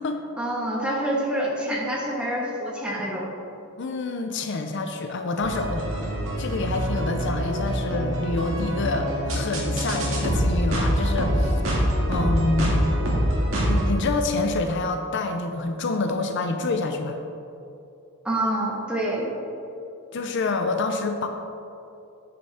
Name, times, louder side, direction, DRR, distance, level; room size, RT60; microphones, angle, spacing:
voice 1, 0.4-3.3 18.2-19.3, right 1 dB, 5° right, -3 dB, 1.4 m, -27 dB
voice 2, 3.8-12.9 13.7-17.2 20.1-21.3, left 3 dB, 60° left, 6 dB, 0.5 m, -27 dB
sound 1, 5.4-13.9, equal, 65° right, 2.0 m, -25 dB
9.4 x 8.0 x 3.5 m, 2.8 s
head